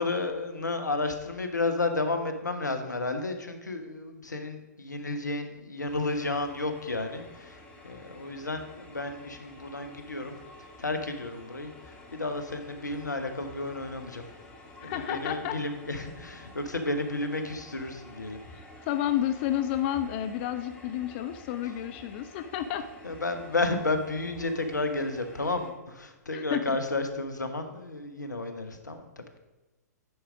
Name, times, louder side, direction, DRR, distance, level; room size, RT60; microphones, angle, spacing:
voice 1, 0.0-10.4 10.8-14.2 14.8-18.4 23.0-29.4, left 2 dB, 80° left, 7 dB, 1.1 m, -32 dB
sound 1, 5.9-25.7, left 2 dB, 10° left, 1.8 m, -50 dB
voice 2, 14.8-15.6 18.5-22.9 26.3-26.8, left 11 dB, 35° left, 9 dB, 0.4 m, -31 dB
9.6 x 4.9 x 5.0 m, 1.1 s
figure-of-eight pair, 115°, 9 cm